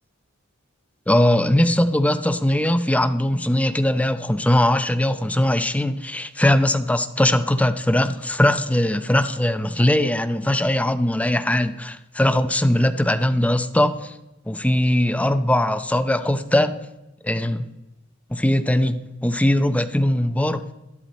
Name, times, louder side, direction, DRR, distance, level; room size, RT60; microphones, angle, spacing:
voice 1, 1.1-14.1 14.5-16.8 17.2-17.7 18.3-20.7, left 1 dB, 5° left, 8 dB, 0.6 m, -20 dB
11.5 x 11.0 x 4.3 m, 0.95 s
head